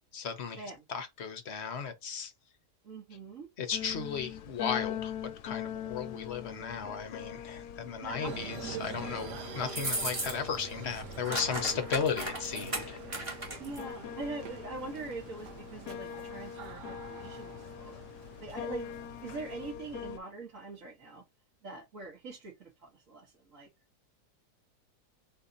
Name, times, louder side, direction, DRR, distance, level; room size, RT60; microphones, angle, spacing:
voice 1, 0.1-0.6 0.9-2.3 3.6-13.0, left 6 dB, 50° left, 1.1 m, -35 dB
voice 2, 2.8-3.5 8.0-8.3 13.6-18.1 18.4-18.9 19.2-21.2 21.6-23.7, right 3 dB, 55° right, 1.8 m, -43 dB
sound 1, 3.7-20.2, left 9 dB, 75° left, 1.1 m, -42 dB
sound 2, 8.2-19.7, right 8 dB, 90° right, 1.3 m, -46 dB
sound 3, 9.7-10.6 10.9-13.8, right 2 dB, 20° right, 1.3 m, -36 dB
4.2 x 2.8 x 3.9 m
omnidirectional pair, 1.7 m